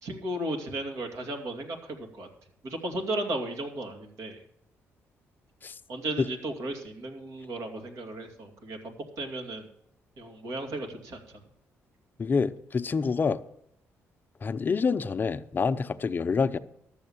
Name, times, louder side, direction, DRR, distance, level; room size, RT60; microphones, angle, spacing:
voice 1, 0.0-2.3 2.6-4.4 5.9-9.7 10.2-11.2, right 1 dB, 75° right, 2.6 m, -35 dB
voice 2, 12.2-13.4 14.4-16.6, left 5 dB, 35° left, 0.6 m, -27 dB
13.0 x 7.2 x 7.2 m
cardioid pair, 95°, 5 cm